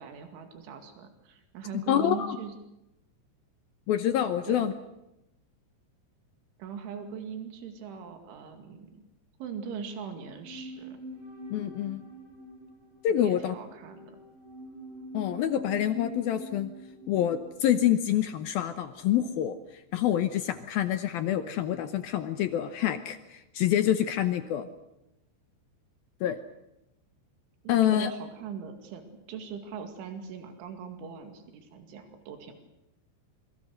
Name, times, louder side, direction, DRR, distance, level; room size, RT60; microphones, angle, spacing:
voice 1, 0.0-2.5 4.4-4.6 6.6-9.0 9.4-11.0 13.2-14.2 27.6-32.5, right 7 dB, 90° right, 5 dB, 4.7 m, -40 dB
voice 2, 1.7-2.4 3.9-4.7 11.5-12.0 13.0-13.5 15.1-16.7 17.1-19.6 19.9-24.7 26.2-26.4 27.7-28.1, left 11 dB, 75° left, 9 dB, 2.3 m, -27 dB
sound 1, 10.1-19.5 19.7-19.8, equal, 65° right, 7.0 m, -45 dB
26.5 x 23.5 x 6.5 m, 0.88 s
omnidirectional pair, 5.3 m